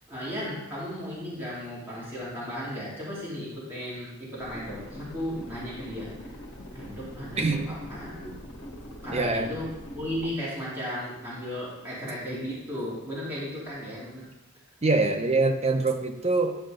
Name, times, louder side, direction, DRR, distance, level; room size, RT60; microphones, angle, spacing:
voice 1, 0.1-6.4 6.7-8.3 8.8-14.3, equal, 10° right, -9 dB, 2.8 m, -35 dB
sound 1, 4.4-10.3, equal, 60° left, 1.8 m, -43 dB
voice 2, 9.1-9.5 14.8-16.6, right 3 dB, 30° right, 4 dB, 0.8 m, -24 dB
11.0 x 5.7 x 3.8 m, 0.94 s
head